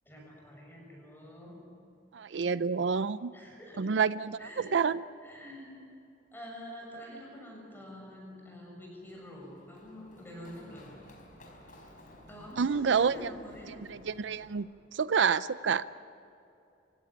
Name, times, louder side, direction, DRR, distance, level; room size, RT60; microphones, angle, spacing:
voice 1, 0.1-1.7 3.3-4.0 4.4-4.8 5.2-5.7 6.3-11.0 12.3-13.7, equal, 10° left, -1 dB, 7.0 m, -47 dB
voice 2, 2.1-3.3 3.8-5.0 12.6-13.3 13.7-15.9, right 6 dB, 80° right, 16 dB, 0.5 m, -29 dB
Run, 9.0-14.6, left 1 dB, 45° left, 4.7 m, -55 dB
25.5 x 16.5 x 9.9 m, 2.7 s
head